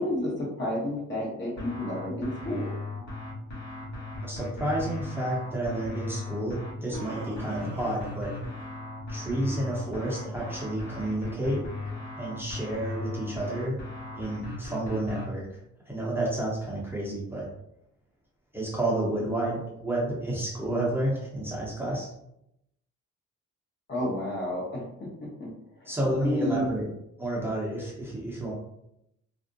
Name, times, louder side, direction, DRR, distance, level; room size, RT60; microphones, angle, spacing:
voice 1, 0.0-2.8 23.9-25.9 26.2-26.8, left 1 dB, 40° left, -4 dB, 0.9 m, -31 dB
sound 1, 1.6-15.3, left 2 dB, 70° left, 1.2 m, -37 dB
voice 2, 4.2-8.3 9.1-11.7 12.2-13.8 14.1-15.4 15.9-17.5 18.5-22.1 25.9-26.8 27.2-28.5, right 1 dB, 5° right, -6 dB, 0.8 m, -30 dB
Laughter, 6.7-8.9 9.3-11.7, right 2 dB, 75° right, 0.6 m, -45 dB
2.5 x 2.0 x 2.5 m, 0.80 s
cardioid pair, 90°, 30 cm